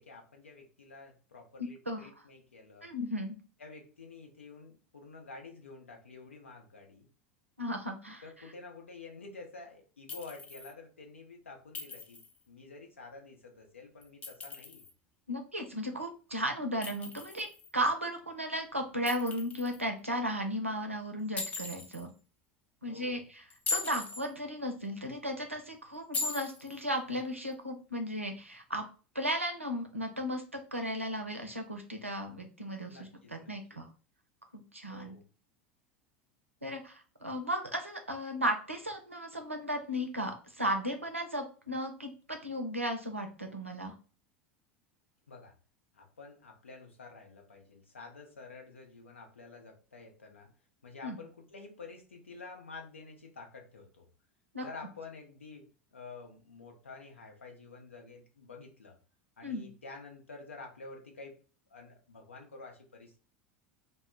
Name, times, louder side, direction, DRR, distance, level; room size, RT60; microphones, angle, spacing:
voice 1, 0.0-2.9 3.6-7.1 8.2-14.9 22.8-23.2 32.9-33.8 34.9-35.3 45.3-45.5 45.9-50.5 50.8-54.1 54.6-59.0 59.4-61.4 61.7-63.2, left 3 dB, 80° left, 2 dB, 0.6 m, -49 dB
voice 2, 2.8-3.4 7.6-8.2 15.3-17.5 17.7-22.1 22.8-23.2 23.7-28.8 29.1-33.9 34.5-35.2 36.6-43.9 51.0-51.2 54.5-54.6 59.4-59.7, equal, 90° right, 4 dB, 0.5 m, -35 dB
Chink clink, 10.1-10.7 11.7-12.4 14.0-14.9 16.8-17.7 19.1-19.8 21.4-22.0 23.5-24.3 26.1-26.8, left 4 dB, 20° left, 0.6 m, -38 dB
2.0 x 2.0 x 3.6 m, 0.36 s
figure-of-eight pair, 80°, 7 cm